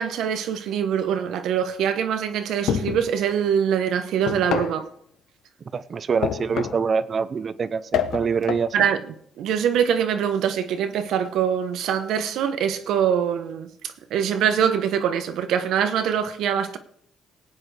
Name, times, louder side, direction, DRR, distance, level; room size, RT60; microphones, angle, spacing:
voice 1, 0.0-4.9 8.7-16.8, right 8 dB, 85° right, 1.1 m, -24 dB
sound 1, 2.7-3.1 4.3-4.8 6.2-6.9 7.9-8.7, left 9 dB, 80° left, 0.7 m, -27 dB
voice 2, 5.7-8.7, right 6 dB, 45° right, 0.7 m, -25 dB
19.5 x 8.8 x 3.4 m
cardioid pair, 90°, 0 cm